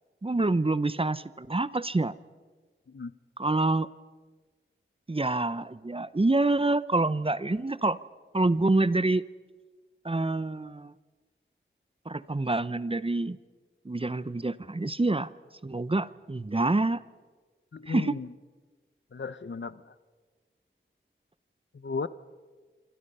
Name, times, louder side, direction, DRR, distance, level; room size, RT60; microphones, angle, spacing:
voice 1, 0.2-2.1 3.4-3.9 5.1-8.0 8.3-9.2 10.0-10.9 12.1-13.4 13.8-15.3 15.6-17.0 17.9-18.1, right 2 dB, 25° right, 16 dB, 0.7 m, -26 dB
voice 2, 17.7-18.3 19.1-19.9 21.7-22.1, left 4 dB, 65° left, 15 dB, 0.8 m, -35 dB
27.0 x 26.0 x 5.5 m, 1.4 s
wide cardioid pair, 55°, 21 cm